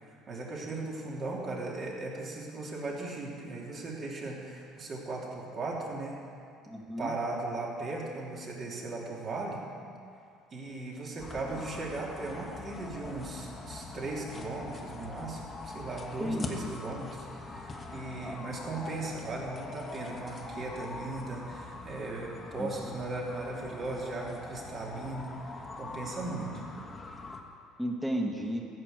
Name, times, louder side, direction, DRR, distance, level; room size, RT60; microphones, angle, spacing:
voice 1, 0.0-6.2 7.0-9.7 10.5-26.6, right 2 dB, 40° right, -3 dB, 3.0 m, -37 dB
voice 2, 6.7-7.1 16.2-16.8 18.2-18.4 22.6-22.7 27.8-28.7, equal, 5° right, 1 dB, 1.8 m, -33 dB
sound 1, 11.2-27.4, left 3 dB, 30° left, 1.4 m, -43 dB
14.0 x 6.1 x 8.2 m, 2.4 s
hypercardioid pair, 75°, 0 cm